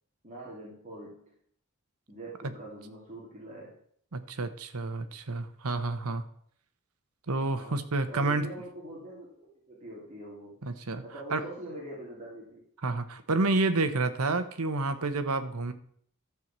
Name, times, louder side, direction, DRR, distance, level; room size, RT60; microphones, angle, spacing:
voice 1, 0.2-1.3 2.1-3.8 7.4-7.8 8.1-10.6 11.0-12.6, right 1 dB, 30° right, -5 dB, 2.6 m, -43 dB
voice 2, 4.1-6.2 7.3-8.5 10.6-11.0 11.3-11.5 12.8-15.7, right 3 dB, 85° right, 10 dB, 1.0 m, -29 dB
12.5 x 4.8 x 7.4 m, 0.63 s
head